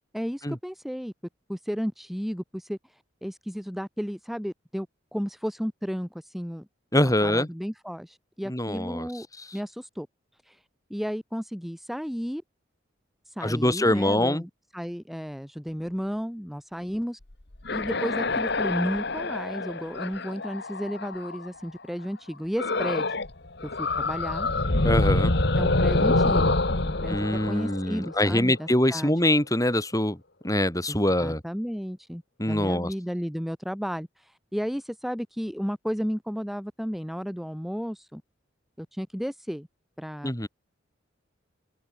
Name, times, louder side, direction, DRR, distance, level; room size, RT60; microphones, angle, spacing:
voice 1, 0.1-1.1 1.5-4.9 5.1-6.7 7.0-9.3 9.5-10.1 10.4-10.6 10.9-12.4 13.3-17.2 17.7-23.1 23.6-24.5 25.6-26.6 26.8-29.1 30.9-38.2 38.8-39.7 40.0-40.3, equal, ahead, 3.8 m, -33 dB
voice 2, 6.9-7.5 8.5-9.1 9.4-9.5 13.4-14.4 24.8-25.3 27.1-30.2 30.4-31.4 32.4-32.9 40.2-40.5, left 1 dB, 20° left, 7.7 m, -24 dB
sound 1, 17.3-21.5 22.6-23.3 23.6-28.5, left 2 dB, 60° left, 2.0 m, -26 dB
open air
head